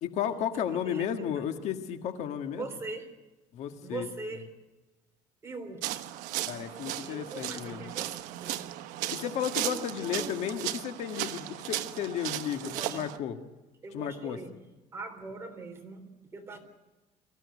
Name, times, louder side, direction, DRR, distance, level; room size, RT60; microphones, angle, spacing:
voice 1, 0.0-2.7 3.5-4.1 6.5-7.9 9.1-13.4 13.9-14.4, left 9 dB, 60° left, 7 dB, 1.7 m, -33 dB
voice 2, 0.6-1.3 2.5-3.1 3.8-4.5 5.4-6.0 7.0-8.7 9.6-10.4 12.6-13.0 13.8-14.6 14.9-16.6, right 3 dB, 20° right, 4 dB, 3.7 m, -42 dB
sound 1, 5.8-13.2, right 14 dB, 80° right, 1.2 m, -36 dB
24.5 x 15.5 x 9.5 m, 1.1 s
cardioid pair, 155°, 13 cm